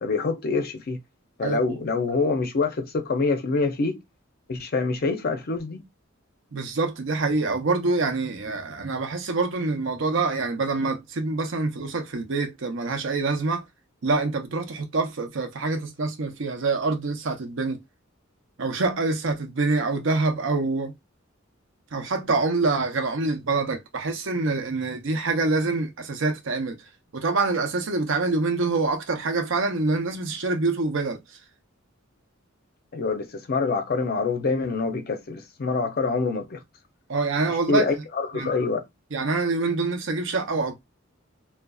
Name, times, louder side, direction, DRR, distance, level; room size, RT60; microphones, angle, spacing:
voice 1, 0.0-1.0 1.4-4.0 4.5-5.8 32.9-36.6 37.7-38.8, left 4 dB, 50° left, 0.5 m, -26 dB
voice 2, 1.4-1.8 6.5-13.6 14.0-17.8 18.6-20.9 21.9-26.8 27.1-31.2 37.1-37.9 38.3-38.5 39.1-40.8, right 3 dB, 65° right, 0.6 m, -25 dB
2.5 x 2.2 x 2.2 m
head